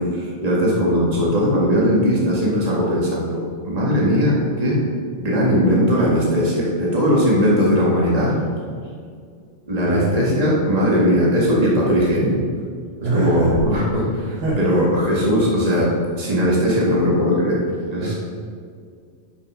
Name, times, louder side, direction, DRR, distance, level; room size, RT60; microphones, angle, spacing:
voice 1, 0.0-4.8 5.2-8.3 9.7-12.4 13.0-17.6 17.9-18.1, equal, 20° right, -5 dB, 1.0 m, -19 dB
voice 2, 9.8-10.2 13.0-13.5 14.4-14.9 18.0-18.1, right 2 dB, 85° right, -8 dB, 3.3 m, -23 dB
11.0 x 5.9 x 5.1 m, 2.1 s
omnidirectional pair, 3.9 m